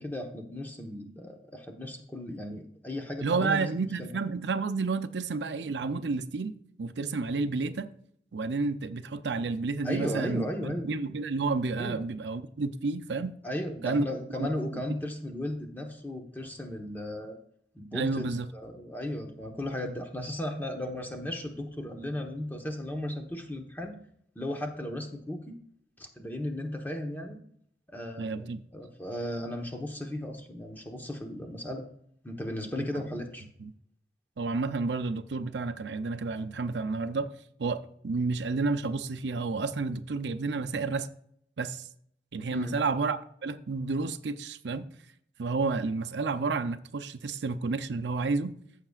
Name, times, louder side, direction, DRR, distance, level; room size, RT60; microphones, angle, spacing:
voice 1, 0.0-4.2 9.8-11.0 11.8-12.0 13.4-17.4 17.7-18.3 18.5-23.9 24.3-25.6 26.0-27.4 27.9-31.9 32.2-33.5 42.5-42.7, left 1 dB, 10° left, 1.1 m, -36 dB
voice 2, 3.2-6.5 6.8-7.9 8.3-13.3 13.8-14.5 17.9-18.5 28.2-28.6 32.8-32.9 33.6-33.7 34.4-37.3 37.6-41.1 41.6-41.9 42.3-44.8 45.4-48.5, right 4 dB, 80° right, 0.6 m, -30 dB
14.5 x 6.6 x 2.4 m
head